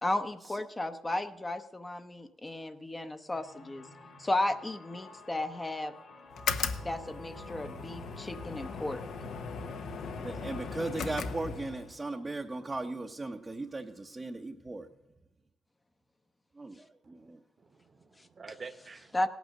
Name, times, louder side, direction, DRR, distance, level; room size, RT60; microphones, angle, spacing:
voice 1, 0.0-3.9 4.2-5.9 6.8-9.0 18.2-18.3 19.1-19.3, left 1 dB, 20° left, 8 dB, 0.7 m, -34 dB
sound 1, 3.3-13.0, left 3 dB, 50° left, 2.0 m, -51 dB
sound 2, 6.3-12.0, left 5 dB, 70° left, 0.9 m, -37 dB
voice 2, 10.2-14.9 16.6-17.4, right 2 dB, 20° right, 3 dB, 0.8 m, -37 dB
voice 3, 17.6-19.3, right 4 dB, 40° right, 11 dB, 1.1 m, -49 dB
17.0 x 9.3 x 6.4 m, 0.95 s
cardioid pair, 90°, 0 cm